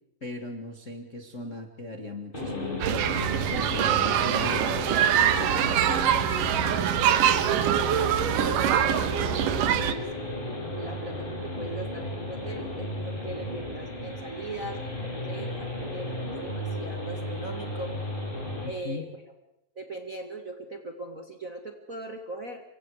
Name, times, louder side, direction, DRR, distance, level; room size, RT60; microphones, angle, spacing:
voice 1, 0.2-6.2 18.6-19.1, left 2 dB, 30° left, 4 dB, 1.5 m, -39 dB
sound 1, 2.3-18.7, left 1 dB, 15° left, 5.8 m, -35 dB
sound 2, 2.8-9.9, right 10 dB, 80° right, 2.8 m, -24 dB
voice 2, 7.2-10.1 10.7-17.9 18.6-19.1 19.7-22.6, right 2 dB, 30° right, 4 dB, 1.6 m, -40 dB
28.5 x 24.5 x 4.9 m, 0.84 s
omnidirectional pair, 3.8 m